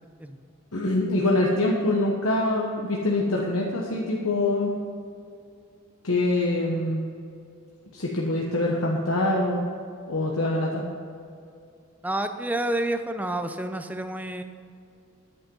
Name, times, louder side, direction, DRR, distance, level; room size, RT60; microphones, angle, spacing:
voice 1, 0.7-4.7 6.0-7.0 7.9-9.7 10.1-10.8, left 2 dB, 75° left, -2 dB, 1.2 m, -24 dB
voice 2, 12.0-14.4, right 1 dB, 10° right, 8 dB, 0.6 m, -29 dB
10.5 x 9.2 x 5.5 m, 2.4 s
head